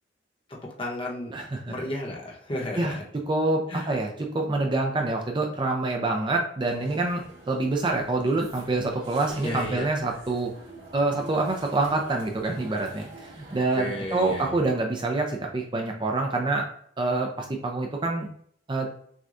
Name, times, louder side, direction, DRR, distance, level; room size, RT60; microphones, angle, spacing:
voice 1, 0.5-1.3 1.7-3.0 3.7-3.9 9.4-9.9 13.7-14.6, left 1 dB, 25° left, -2 dB, 0.9 m, -33 dB
voice 2, 1.3-1.7 2.8-3.0 3.3-10.5 10.9-16.7 17.0-18.3 18.7-18.9, right 2 dB, 25° right, 1 dB, 0.4 m, -26 dB
sound 1, 6.6-14.4, right 2 dB, 85° right, 1.6 m, -46 dB
6.1 x 2.2 x 2.5 m, 0.63 s
head